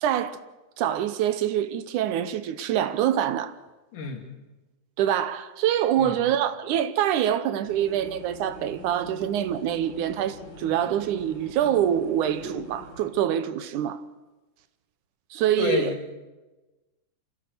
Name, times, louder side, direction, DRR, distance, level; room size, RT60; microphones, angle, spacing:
voice 1, 0.0-0.4 0.8-3.6 5.0-14.0 15.3-15.9, right 10 dB, 75° right, 2.3 m, -25 dB
voice 2, 3.9-4.2 6.0-6.2 15.6-16.2, left 4 dB, 75° left, 4.1 m, -29 dB
sound 1, 7.6-13.1, left 1 dB, 60° left, 9.2 m, -43 dB
25.5 x 16.0 x 6.8 m
omnidirectional pair, 3.7 m